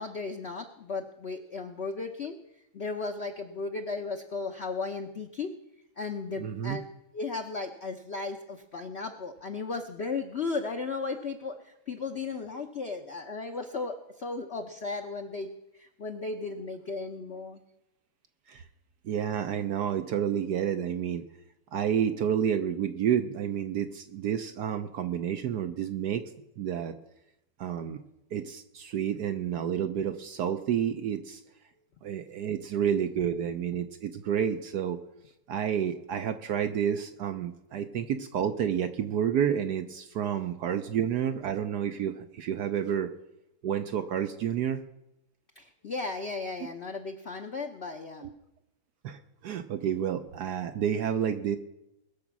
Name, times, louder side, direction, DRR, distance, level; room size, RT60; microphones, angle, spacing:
voice 1, 0.0-5.5 6.0-6.8 7.1-17.6 45.5-48.3, left 4 dB, 45° left, 3 dB, 0.9 m, -35 dB
voice 2, 6.4-6.8 18.5-18.6 19.0-21.2 21.7-26.2 26.6-26.9 27.6-28.0 28.3-31.4 32.0-35.0 35.5-43.1 43.6-44.8 48.2-48.3 49.0-51.6, right 9 dB, 65° right, 8 dB, 1.1 m, -30 dB
20.5 x 7.2 x 6.0 m, 0.87 s
omnidirectional pair, 2.2 m